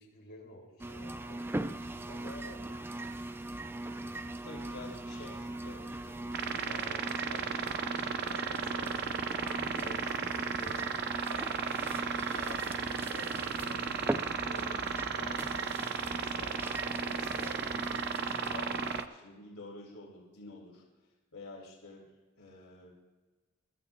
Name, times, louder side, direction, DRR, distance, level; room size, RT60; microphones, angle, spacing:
voice 1, 0.0-3.0 3.9-4.3, left 1 dB, 45° left, -4 dB, 3.7 m, -53 dB
sound 1, 0.8-19.1, right 1 dB, 10° right, 0.3 m, -40 dB
voice 2, 4.4-10.9 11.2-12.0 12.3-15.7 16.1-20.8 21.3-22.1 22.4-22.9, left 2 dB, 80° left, -3 dB, 2.9 m, -49 dB
sound 2, 6.3-19.0, right 6 dB, 50° right, 0.6 m, -35 dB
24.0 x 12.5 x 2.2 m, 1.3 s
head